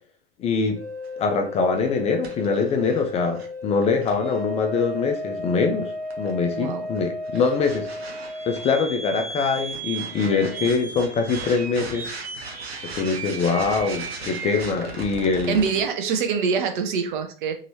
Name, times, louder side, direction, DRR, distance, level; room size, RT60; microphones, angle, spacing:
voice 1, 0.4-0.8 1.2-5.9 6.2-8.1 8.5-12.1 12.8-15.6, left 4 dB, 20° left, 0.4 m, -23 dB
sound 1, 0.7-15.8, right 1 dB, 90° right, 0.8 m, -34 dB
voice 2, 6.5-6.8 15.5-17.5, right 6 dB, 55° right, 0.7 m, -24 dB
2.9 x 2.7 x 2.7 m
hypercardioid pair, 100°, 30 cm